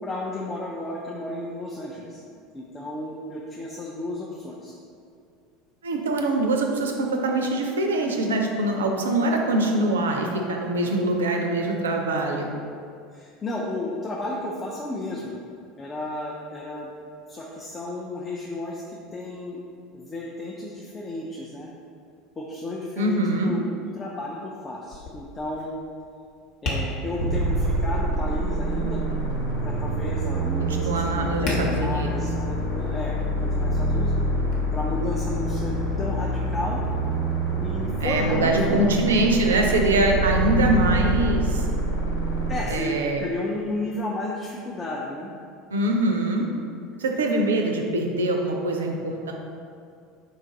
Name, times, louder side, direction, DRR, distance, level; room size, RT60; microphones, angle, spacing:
voice 1, 0.0-2.2 2.5-4.7 13.1-15.4 15.8-16.9 17.3-19.6 19.9-21.7 22.4-25.7 26.6-29.0 29.6-33.2 33.4-34.1 34.7-36.8 37.6-38.9 42.5-45.3, left 1 dB, 25° left, -3 dB, 0.4 m, -33 dB
voice 2, 5.8-12.5 23.0-23.5 30.6-32.1 38.0-41.6 42.7-43.3 45.7-46.4 47.0-49.3, right 2 dB, 70° right, 2 dB, 0.4 m, -23 dB
Tap, 24.8-34.5, left 1 dB, 50° left, 0.8 m, -37 dB
sound 1, 27.2-42.5, right 1 dB, 80° left, 0.9 m, -26 dB
3.9 x 2.4 x 3.8 m, 2.4 s
figure-of-eight pair, 75°, 0 cm